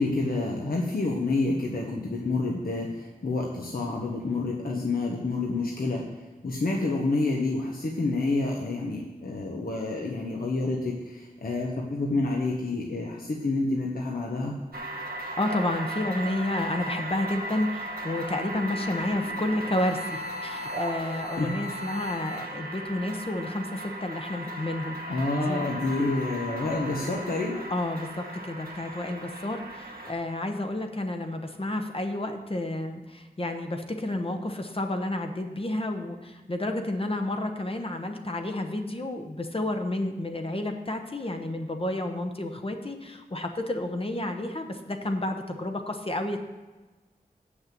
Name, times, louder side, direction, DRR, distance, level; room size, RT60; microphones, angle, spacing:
voice 1, 0.0-6.0 6.4-14.5 21.4-21.5 25.1-27.6, left 2 dB, 70° left, -1 dB, 1.2 m, -28 dB
sound 1, 14.7-30.1, right 1 dB, 75° right, 1.2 m, -37 dB
voice 2, 15.4-25.0 25.4-25.7 27.7-46.4, left 1 dB, 35° left, 4 dB, 1.0 m, -31 dB
sound 2, 19.7-22.8, left 2 dB, 90° left, 1.5 m, -40 dB
7.7 x 6.4 x 7.5 m, 1.2 s
wide cardioid pair, 65°, 16 cm